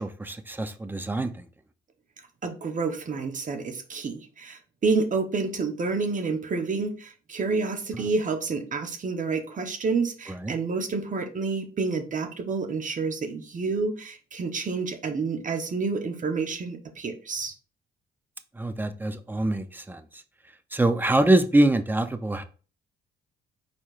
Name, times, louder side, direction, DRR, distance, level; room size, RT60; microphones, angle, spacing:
voice 1, 0.0-1.5 10.3-10.5 18.6-20.0 20.7-22.4, right 1 dB, 10° right, 0.5 m, -24 dB
voice 2, 2.4-17.5, right 4 dB, 40° right, 1.0 m, -29 dB
4.6 x 4.2 x 2.4 m
cardioid pair, 90°, 20 cm